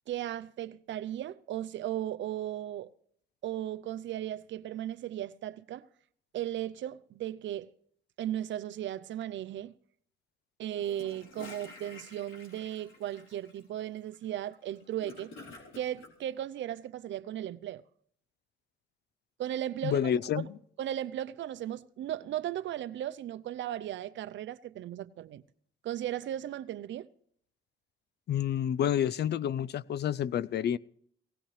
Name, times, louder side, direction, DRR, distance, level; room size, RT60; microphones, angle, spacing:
voice 1, 0.1-2.9 3.4-5.9 6.3-7.7 8.2-9.7 10.6-15.3 15.7-17.8 19.4-20.1 20.4-20.5 20.8-25.4 25.8-27.1, right 12 dB, 70° right, 0.6 m, -36 dB
Gurgling / Toilet flush, 10.8-16.1, left 3 dB, 80° left, 3.6 m, -50 dB
voice 2, 19.8-20.4 28.3-30.8, left 9 dB, 55° left, 0.5 m, -29 dB
17.5 x 17.0 x 3.3 m
cardioid pair, 90°, 20 cm